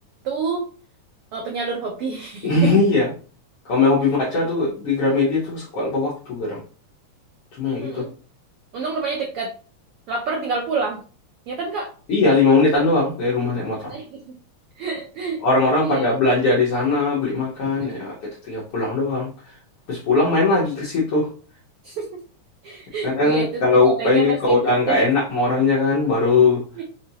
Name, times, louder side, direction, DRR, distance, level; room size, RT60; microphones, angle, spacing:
voice 1, 0.2-0.6 1.3-2.8 4.0-4.1 7.8-8.1 8.7-9.5 10.1-11.0 11.5-11.9 13.8-14.3 14.8-15.4 15.8-16.1 17.6-17.9 21.8-22.2 22.6-25.0 26.7-26.8, right 4 dB, 85° right, 0 dB, 1.2 m, -28 dB
voice 2, 2.4-3.1 3.7-6.6 7.6-8.0 12.1-13.9 15.4-18.1 18.5-19.3 19.9-21.3 23.0-26.6, left 3 dB, 60° left, -7 dB, 1.8 m, -19 dB
5.3 x 2.7 x 2.8 m, 0.39 s
omnidirectional pair, 3.5 m